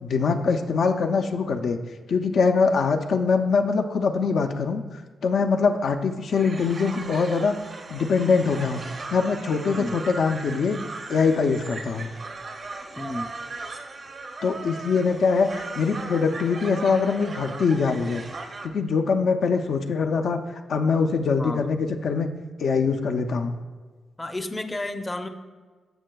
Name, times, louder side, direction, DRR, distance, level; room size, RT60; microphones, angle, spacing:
voice 1, 0.0-1.8 2.1-4.8 5.2-7.6 7.9-8.8 9.1-10.8 11.1-12.1 14.4-18.2 18.6-20.4 20.7-22.3 22.6-23.6, left 5 dB, 70° left, 5 dB, 0.5 m, -23 dB
sound 1, 6.3-18.7, right 3 dB, 50° right, 0.7 m, -38 dB
voice 2, 13.0-13.3 21.4-21.6 24.2-25.3, left 1 dB, 15° left, 6 dB, 0.5 m, -31 dB
14.0 x 5.5 x 2.3 m, 1.4 s
cardioid pair, 90°, 0 cm